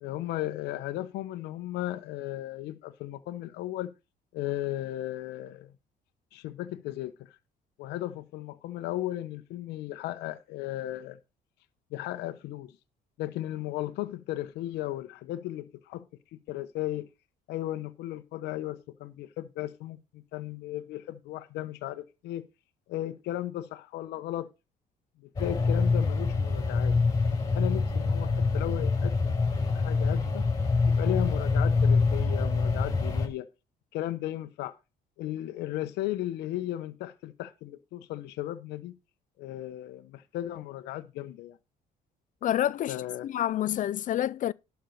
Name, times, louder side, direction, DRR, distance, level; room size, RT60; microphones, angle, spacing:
voice 1, 0.0-3.9 4.3-5.7 6.3-7.4 7.8-11.2 11.9-12.7 13.2-16.1 16.3-17.1 17.5-22.5 22.9-24.5 25.2-27.0 27.5-29.4 29.7-30.4 30.9-33.5 33.9-34.8 35.2-38.9 39.4-41.6 42.9-43.3, left 14 dB, 85° left, 1.0 m, -35 dB
sound 1, 25.4-33.3, left 4 dB, 20° left, 5.6 m, -25 dB
voice 2, 42.4-43.0 43.2-44.5, left 12 dB, 50° left, 0.4 m, -28 dB
12.0 x 4.6 x 6.5 m
cardioid pair, 110°, 17 cm